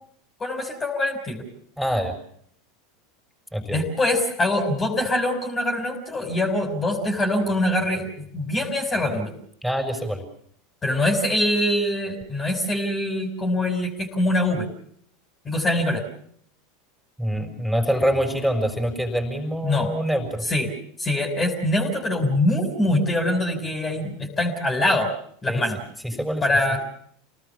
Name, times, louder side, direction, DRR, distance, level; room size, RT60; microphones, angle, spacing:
voice 1, 0.4-1.4 3.7-9.3 10.8-14.7 15.5-16.0 19.6-19.9 20.4-20.7 21.0-25.1 25.4-25.8 26.4-26.8, left 1 dB, 25° left, 3 dB, 5.5 m, -23 dB
voice 2, 1.8-2.1 3.5-3.8 9.6-10.2 17.2-20.4 25.5-25.6 26.0-26.4, equal, ahead, 4 dB, 6.3 m, -25 dB
28.5 x 19.0 x 7.1 m, 0.66 s
figure-of-eight pair, 80°, 0 cm